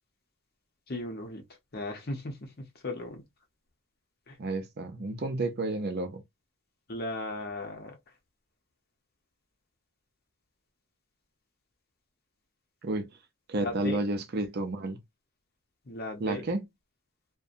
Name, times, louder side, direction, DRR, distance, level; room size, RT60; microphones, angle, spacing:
voice 1, 0.9-1.4 1.7-3.2 4.3-4.4 6.9-8.0 13.6-14.0 15.9-16.4, left 1 dB, 45° left, 0.8 m, -36 dB
voice 2, 4.4-6.2 12.8-13.1 13.5-15.0 16.2-16.7, right 2 dB, 45° right, 0.5 m, -31 dB
2.7 x 2.2 x 2.4 m
head